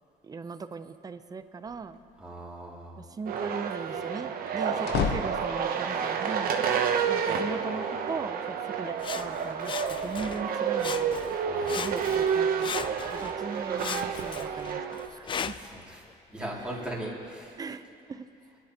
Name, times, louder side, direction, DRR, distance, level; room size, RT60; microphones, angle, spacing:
voice 1, 0.2-2.0 3.0-6.6 7.0-11.2 11.7-12.7 13.1-15.6 16.6-16.8 17.6-18.3, right 4 dB, 20° right, 10 dB, 0.6 m, -39 dB
sound 1, 1.7-2.2 4.4-6.0, left 6 dB, 75° left, 0.9 m, -32 dB
voice 2, 2.2-3.0 11.4-11.9 15.2-16.1 16.3-17.6, right 1 dB, 5° right, -5 dB, 2.6 m, -39 dB
sound 2, 3.3-15.1, right 7 dB, 60° right, 0.9 m, -29 dB
Sawing, 9.0-10.5 10.8-11.4 11.7-13.4 13.8-15.8 16.4-16.5, left 7 dB, 30° left, 0.4 m, -37 dB
22.5 x 10.5 x 3.0 m, 2.6 s
cardioid pair, 110°, 17 cm